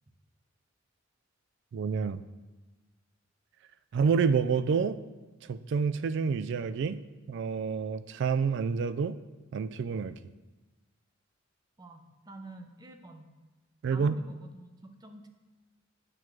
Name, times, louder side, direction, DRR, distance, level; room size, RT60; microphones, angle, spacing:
voice 1, 1.7-2.2 3.9-5.0 5.5-7.0 7.3-9.2 9.5-10.2 13.8-14.1, right 5 dB, 60° right, 13 dB, 0.3 m, -28 dB
voice 2, 11.8-13.3 13.9-15.3, right 2 dB, 20° right, 5 dB, 0.6 m, -48 dB
8.8 x 5.9 x 3.2 m, 1.2 s
head